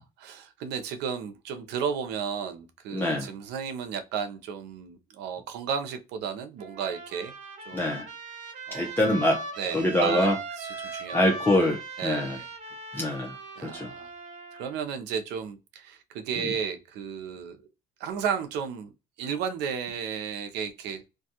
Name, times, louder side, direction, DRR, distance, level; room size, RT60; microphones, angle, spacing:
voice 1, 0.0-7.3 7.7-8.0 8.7-8.9 9.6-10.3 10.6-11.2 12.0-12.5 12.9-13.1 13.6-14.1 14.5-17.6 18.0-18.9 19.2-21.0, right 7 dB, 85° right, 0.5 m, -33 dB
voice 2, 2.9-3.3 7.7-8.1 8.7-9.4 9.7-10.4 10.8-12.4 12.9-13.3 13.6-13.9 16.4-16.5, left 1 dB, 10° left, 0.7 m, -25 dB
Trumpet, 6.6-14.8, right 3 dB, 45° right, 0.9 m, -39 dB
2.5 x 2.3 x 2.7 m
cardioid pair, 110°, 17 cm